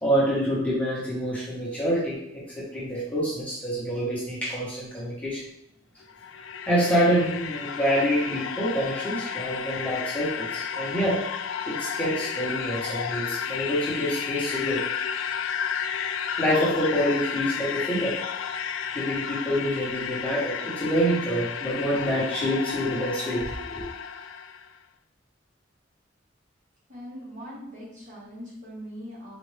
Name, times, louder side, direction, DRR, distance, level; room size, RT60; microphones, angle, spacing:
voice 1, 0.0-5.4 6.6-11.2 11.7-14.8 16.4-18.1 18.9-23.8, equal, 10° left, -7 dB, 1.1 m, -26 dB
sound 1, 6.0-24.7, left 7 dB, 85° left, 0.3 m, -32 dB
voice 2, 26.9-29.4, equal, 40° right, -6 dB, 1.4 m, -41 dB
4.1 x 2.5 x 3.3 m, 0.78 s
head